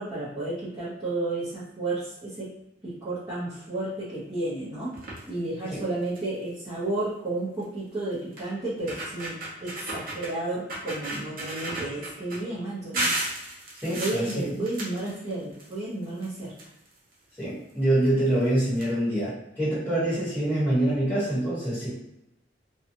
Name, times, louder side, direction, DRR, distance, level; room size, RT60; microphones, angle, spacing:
voice 1, 0.0-2.5 2.8-4.9 5.3-13.1 13.9-16.5, right 2 dB, 20° right, -12 dB, 0.8 m, -32 dB
sound 1, 4.9-5.3 5.8-5.9 6.2-6.4 7.6-7.7 8.4-8.5 8.8-10.3 10.7-12.4 12.9-15.7 16.0-17.1 18.0-18.1 18.4-18.5 18.8-18.9, right 1 dB, 50° right, 0.9 m, -33 dB
voice 2, 13.8-14.5 17.4-21.9, right 1 dB, 10° left, -11 dB, 1.2 m, -25 dB
2.7 x 2.3 x 2.6 m, 0.85 s
head